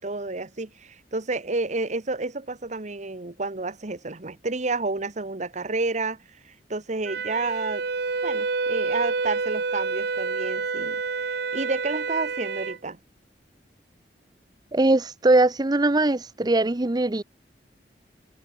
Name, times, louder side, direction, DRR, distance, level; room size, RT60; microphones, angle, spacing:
voice 1, 0.0-7.8 8.2-11.0 11.3-13.0, right 3 dB, 45° right, 1.4 m, -30 dB
Wind instrument woodwind instrument, 7.0-12.8, right 4 dB, 70° right, 0.9 m, -28 dB
voice 2, 14.7-17.2, right 2 dB, 25° right, 0.7 m, -21 dB
open air
head